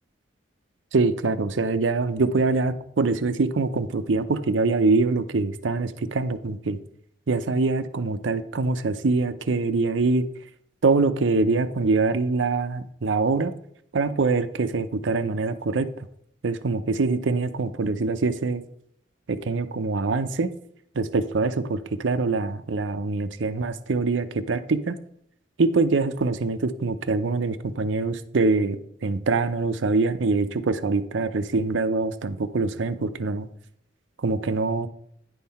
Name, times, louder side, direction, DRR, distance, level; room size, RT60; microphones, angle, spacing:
voice 1, 0.9-6.8 7.3-10.3 10.8-13.5 13.9-16.1 16.4-18.6 19.3-20.5 20.9-25.0 25.6-33.5 34.2-34.9, right 3 dB, 85° right, 11 dB, 0.6 m, -24 dB
10.0 x 5.7 x 4.2 m, 0.69 s
head